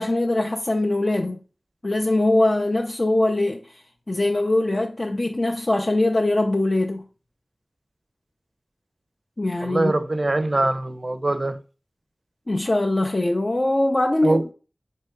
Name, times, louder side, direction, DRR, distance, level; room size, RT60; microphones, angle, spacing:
voice 1, 0.0-1.4 1.8-7.0 9.4-9.9 12.5-14.5, left 2 dB, 45° left, 0.4 m, -22 dB
voice 2, 9.6-11.6 14.2-14.4, right 2 dB, 45° right, 0.4 m, -22 dB
3.5 x 2.8 x 4.3 m
wide cardioid pair, 45°, 0 cm